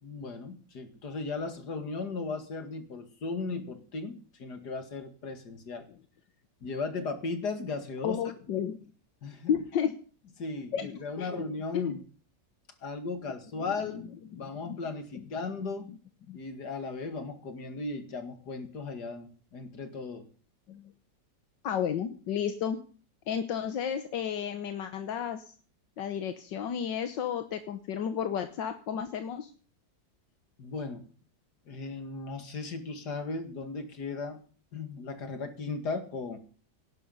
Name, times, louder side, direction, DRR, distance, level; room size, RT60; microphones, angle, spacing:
voice 1, 0.0-5.9 6.6-8.2 9.2-9.5 10.4-12.0 12.8-14.1 14.4-15.9 16.3-20.3 30.6-31.1 31.7-34.4 34.7-36.4, left 4 dB, 65° left, 8 dB, 2.6 m, -36 dB
voice 2, 8.0-8.8 9.5-9.9 10.7-11.4 11.7-12.0 13.9-14.0 14.3-14.8 15.1-15.2 16.3-16.4 20.7-20.8 21.6-22.8 23.3-25.5 26.0-29.5, left 8 dB, 85° left, 8 dB, 1.8 m, -32 dB
18.0 x 11.0 x 5.5 m, 0.41 s
omnidirectional pair, 1.9 m